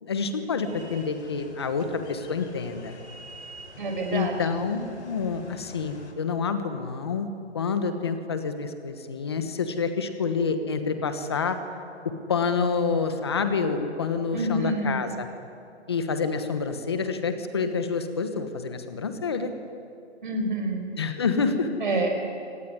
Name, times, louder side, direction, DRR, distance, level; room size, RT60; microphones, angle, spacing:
voice 1, 0.0-3.0 4.1-7.3 7.5-11.6 12.3-15.3 15.9-19.5 20.9-21.7, left 5 dB, 20° left, 8 dB, 1.2 m, -28 dB
sound 1, 0.6-6.1, left 1 dB, 70° left, 4.4 m, -46 dB
voice 2, 3.8-4.4 14.3-15.0 20.2-20.9 21.8-22.1, right 2 dB, 45° right, 3 dB, 5.4 m, -27 dB
25.5 x 18.5 x 9.8 m, 2.5 s
hypercardioid pair, 180°, 35 cm